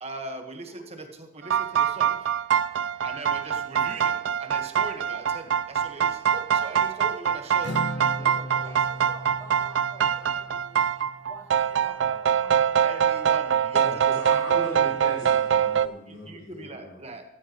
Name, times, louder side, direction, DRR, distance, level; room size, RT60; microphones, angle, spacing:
voice 1, 0.0-2.3 3.0-8.7 12.8-13.9 14.1-14.6 16.1-17.2, right 2 dB, 35° right, 1.4 m, -40 dB
sound 1, 1.4-15.9, right 8 dB, 70° right, 0.4 m, -24 dB
voice 2, 6.5-7.1 8.2-10.8 11.2-13.0, equal, 15° left, 4.6 m, -48 dB
Acoustic guitar, 7.6-11.3, equal, 65° left, 1.0 m, -37 dB
voice 3, 13.7-17.0, left 1 dB, 90° left, 3.0 m, -38 dB
14.5 x 13.5 x 3.1 m
head